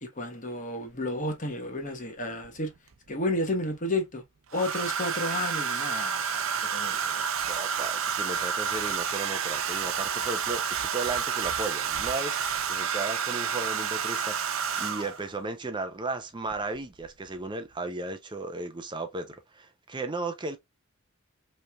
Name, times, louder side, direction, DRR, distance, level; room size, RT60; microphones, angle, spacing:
voice 1, 0.0-2.7 3.1-4.2 4.5-7.3, left 1 dB, 35° left, 1.1 m, -32 dB
Domestic sounds home sounds, 0.9-1.0 2.4-3.1 4.5-15.3 16.5-16.8 17.0-17.4, right 7 dB, 70° right, 0.6 m, -30 dB
voice 2, 7.5-12.4 12.7-20.6, right 3 dB, 20° right, 0.5 m, -35 dB
5.1 x 3.2 x 2.3 m
head